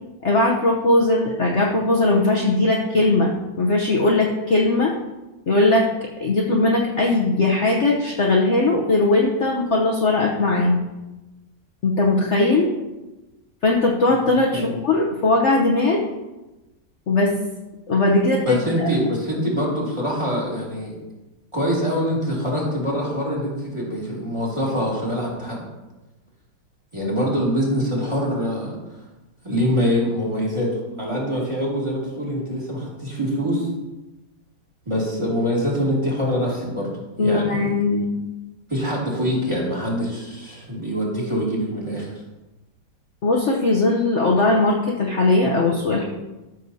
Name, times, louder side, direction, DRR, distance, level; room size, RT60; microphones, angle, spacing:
voice 1, 0.2-4.9 5.5-5.9 6.2-10.8 11.8-12.7 13.6-16.0 17.1-17.3 17.9-18.9 37.2-38.2 43.2-46.0, left 2 dB, 50° left, -2 dB, 1.0 m, -19 dB
voice 2, 18.4-20.9 21.5-25.6 26.9-28.7 29.4-33.7 34.9-36.9 37.2-37.7 38.7-42.1, equal, 15° right, -5 dB, 2.3 m, -24 dB
13.5 x 6.6 x 2.7 m, 1.1 s
omnidirectional pair, 1.9 m